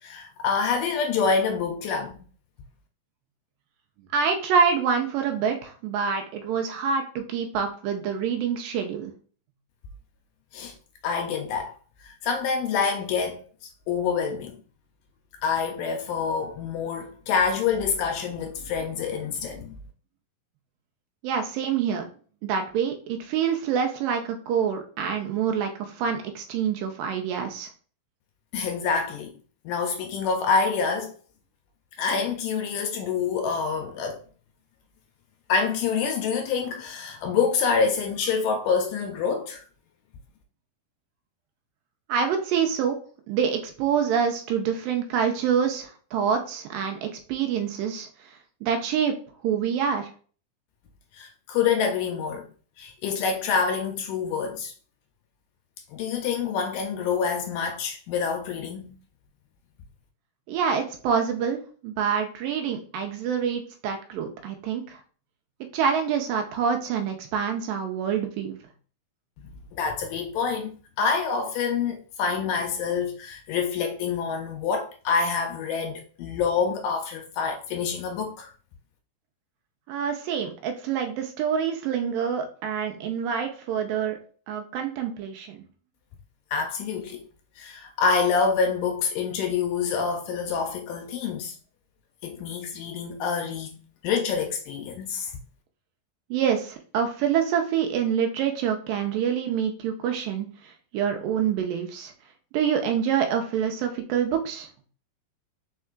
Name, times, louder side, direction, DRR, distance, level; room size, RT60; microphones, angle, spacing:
voice 1, 0.0-2.2 10.5-10.7 11.0-11.8 12.0-13.4 13.9-14.6 15.4-19.8 28.5-29.3 29.7-31.2 32.0-34.2 35.5-39.6 51.1-52.5 52.8-54.7 55.9-58.9 69.4-78.5 86.5-87.2 87.6-91.5 92.2-95.3, left 5 dB, 80° left, 2.0 m, -27 dB
voice 2, 4.1-9.1 21.2-22.1 22.4-27.7 42.1-43.0 43.3-48.1 48.6-49.2 49.4-50.1 60.5-65.0 65.7-68.6 79.9-84.2 84.5-85.6 96.3-102.1 102.5-104.7, right 7 dB, 80° right, 2.3 m, -26 dB
4.5 x 4.4 x 2.4 m
omnidirectional pair, 4.1 m